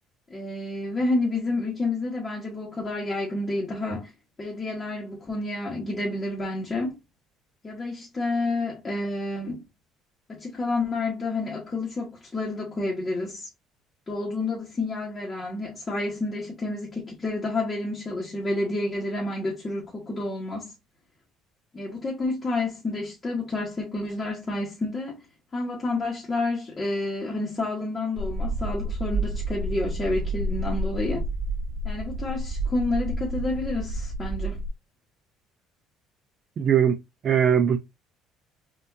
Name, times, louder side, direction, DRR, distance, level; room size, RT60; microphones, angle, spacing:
voice 1, 0.3-4.1 4.4-7.0 7.6-9.6 10.3-13.5 14.1-20.7 21.7-25.2 25.5-31.2 31.8-34.6, left 2 dB, 20° left, 1.3 m, -29 dB
sound 1, 28.2-34.7, right 1 dB, 70° right, 2.1 m, -30 dB
voice 2, 36.6-37.0 37.2-37.8, right 8 dB, 35° right, 0.5 m, -20 dB
5.8 x 2.7 x 2.7 m
cardioid pair, 165°, 0 cm